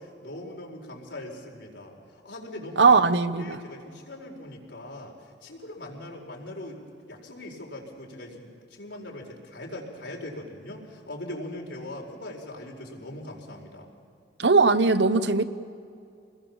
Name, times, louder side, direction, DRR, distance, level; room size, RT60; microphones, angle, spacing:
voice 1, 0.0-2.0 2.2-3.0 3.4-5.2 5.4-13.9, left 1 dB, 85° left, 4.5 m, -40 dB
voice 2, 2.8-3.6 14.4-15.4, right 4 dB, 75° right, 1.0 m, -19 dB
27.5 x 21.0 x 7.2 m
head